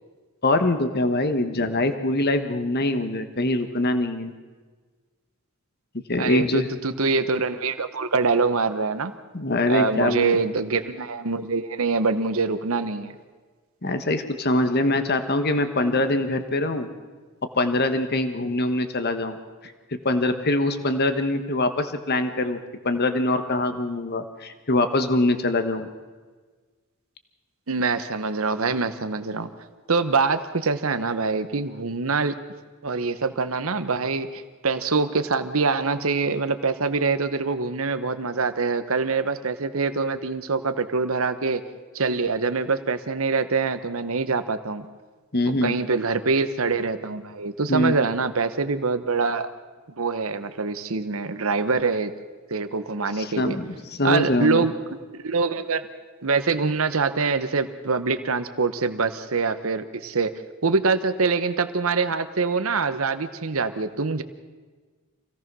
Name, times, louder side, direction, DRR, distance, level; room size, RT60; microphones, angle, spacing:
voice 1, 0.4-4.3 5.9-6.7 9.3-10.4 13.8-16.9 17.6-19.4 20.0-22.6 22.8-25.9 45.3-45.8 47.7-47.9 53.2-54.7, left 2 dB, 45° left, 8 dB, 1.3 m, -23 dB
voice 2, 6.2-9.1 9.7-13.1 27.7-29.5 29.9-32.3 32.8-41.6 41.9-44.9 45.5-49.5 50.0-52.1 52.5-53.6 54.0-54.7 55.1-55.9 56.2-60.3 60.6-64.2, right 4 dB, 70° right, 10 dB, 1.0 m, -24 dB
25.5 x 17.0 x 6.2 m, 1.4 s
head